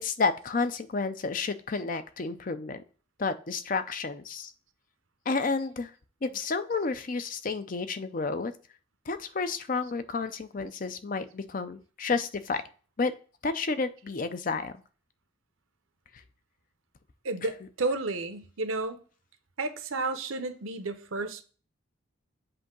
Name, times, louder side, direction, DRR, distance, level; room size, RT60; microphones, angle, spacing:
voice 1, 0.0-2.8 3.2-4.5 5.3-5.9 6.2-8.5 9.1-12.6 13.0-13.1 13.4-14.7, left 4 dB, 40° left, 0.5 m, -31 dB
voice 2, 17.2-19.0 19.6-21.4, right 3 dB, 75° right, 0.8 m, -32 dB
7.7 x 2.8 x 5.9 m
head